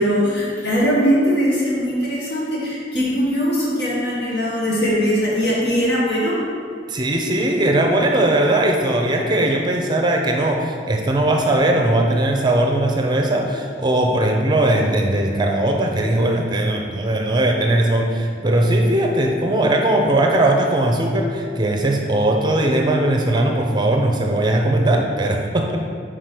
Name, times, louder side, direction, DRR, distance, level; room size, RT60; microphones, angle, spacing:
voice 1, 0.0-6.4, equal, 70° left, -6 dB, 1.6 m, -20 dB
voice 2, 6.9-25.8, right 1 dB, 25° right, 2 dB, 0.6 m, -19 dB
4.9 x 4.9 x 5.9 m, 2.2 s
head